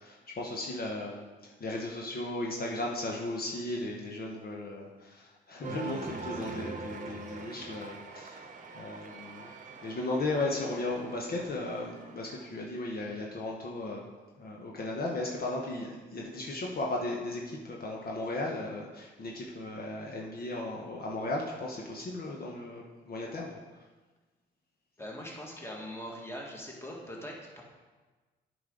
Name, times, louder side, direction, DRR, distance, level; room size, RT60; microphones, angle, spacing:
voice 1, 0.0-8.5 8.7-9.5 9.8-14.1 14.4-23.8, left 2 dB, 50° left, -2 dB, 1.1 m, -36 dB
Cheering, 5.6-12.7, right 3 dB, 40° right, 1.0 m, -43 dB
voice 2, 25.0-27.6, equal, 10° left, -2 dB, 1.8 m, -42 dB
9.4 x 5.2 x 3.9 m, 1.3 s
cardioid pair, 90°, 20 cm